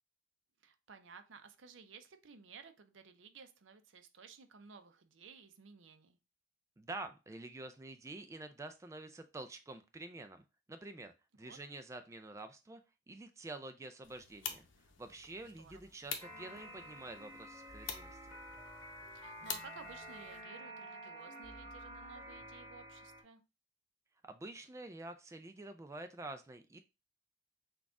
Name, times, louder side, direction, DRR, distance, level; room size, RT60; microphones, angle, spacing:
voice 1, 0.6-6.2 11.4-11.6 15.4-15.9 19.1-23.4, right 5 dB, 75° right, 0.6 m, -56 dB
voice 2, 6.8-10.4 10.7-12.8 13.1-14.7 15.0-18.2 24.2-26.8, right 2 dB, 15° right, 0.3 m, -48 dB
sound 1, 14.0-20.4, left 7 dB, 80° left, 0.8 m, -48 dB
sound 2, 16.2-23.2, right 1 dB, 15° left, 1.8 m, -50 dB
6.1 x 2.4 x 3.6 m
head